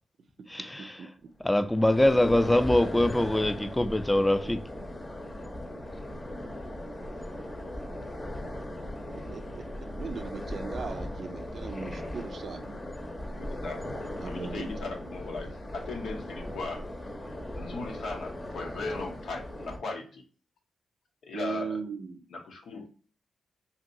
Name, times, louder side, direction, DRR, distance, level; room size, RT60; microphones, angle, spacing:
voice 1, 0.5-1.1 1.4-4.6, left 1 dB, 15° left, 0.4 m, -24 dB
sound 1, 1.5-19.8, left 1 dB, 35° left, 0.8 m, -38 dB
voice 2, 9.3-9.6 10.0-12.6 14.2-14.7 21.3-22.2, right 5 dB, 65° right, 0.4 m, -38 dB
voice 3, 13.4-13.8 14.2-16.8 17.6-20.2 21.2-21.8 22.3-22.9, left 3 dB, 80° left, 0.8 m, -37 dB
2.8 x 2.8 x 2.6 m
supercardioid pair, 50°, 0 cm